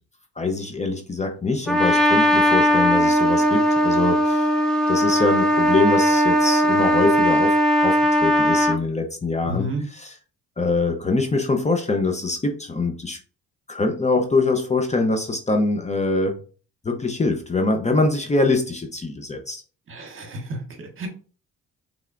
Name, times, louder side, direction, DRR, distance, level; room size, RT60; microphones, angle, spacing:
voice 1, 0.4-4.6 4.9-9.7 9.9-10.1 10.6-13.2 13.7-16.4 16.8-19.6, left 3 dB, 25° left, 4 dB, 0.8 m, -23 dB
Trumpet, 1.7-8.8, equal, ahead, 1.0 m, -18 dB
voice 2, 9.4-9.8 19.9-21.1, right 1 dB, 45° right, 3 dB, 1.6 m, -31 dB
5.6 x 3.5 x 2.5 m, 0.38 s
cardioid pair, 90°, 30 cm